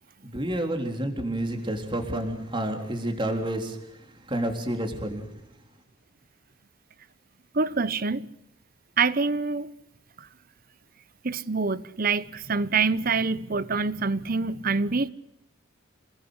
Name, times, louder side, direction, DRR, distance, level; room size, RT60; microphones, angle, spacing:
voice 1, 0.2-5.4, right 1 dB, 25° right, 3.8 m, -30 dB
voice 2, 7.5-8.3 9.0-9.7 10.2-10.3 11.2-15.1, right 4 dB, 45° right, 0.9 m, -26 dB
28.5 x 20.0 x 8.2 m
head